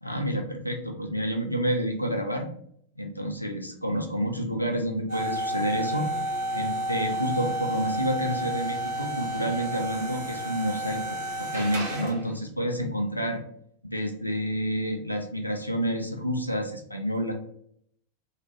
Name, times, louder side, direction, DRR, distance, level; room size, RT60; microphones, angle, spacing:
voice 1, 0.0-2.5 3.0-6.1 6.5-13.4 13.8-17.3, equal, 90° left, 2 dB, 0.5 m, -29 dB
sound 1, 5.1-12.3, right 1 dB, 50° right, 1.1 m, -31 dB
2.5 x 2.3 x 3.1 m, 0.67 s
figure-of-eight pair, 90°, 0 cm